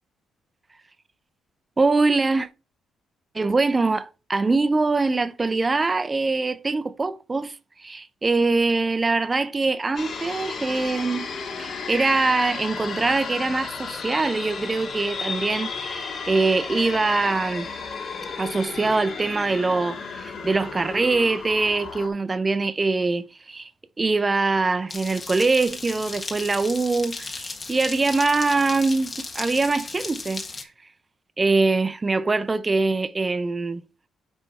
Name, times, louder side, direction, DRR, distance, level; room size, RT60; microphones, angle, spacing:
voice 1, 1.8-2.5 3.3-11.3 11.6-17.7 18.4-23.7 24.0-30.4 31.4-33.8, right 3 dB, 25° right, 0.6 m, -23 dB
sound 1, 10.0-22.1, left 5 dB, 55° left, 1.9 m, -33 dB
sound 2, 24.9-30.6, left 3 dB, 30° left, 1.5 m, -35 dB
9.7 x 3.4 x 4.2 m
cardioid pair, 90°, 0 cm